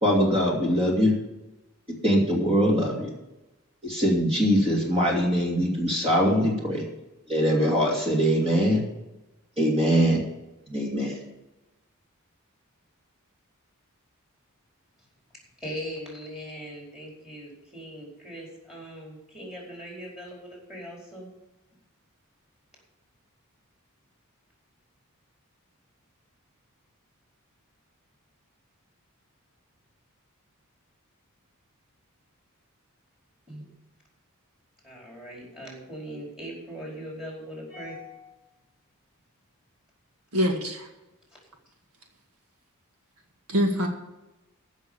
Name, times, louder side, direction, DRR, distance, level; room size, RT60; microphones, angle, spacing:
voice 1, 0.0-1.1 2.0-3.1 3.8-6.8 7.3-8.8 9.6-10.2 10.7-11.2, equal, 25° right, -2 dB, 2.7 m, -22 dB
voice 2, 15.6-21.3 33.5-33.6 34.8-38.5 41.3-41.4, equal, 5° right, -2 dB, 4.7 m, -40 dB
voice 3, 40.3-40.9 43.5-43.9, equal, 85° right, 3 dB, 1.9 m, -24 dB
15.0 x 6.5 x 7.1 m, 0.99 s
head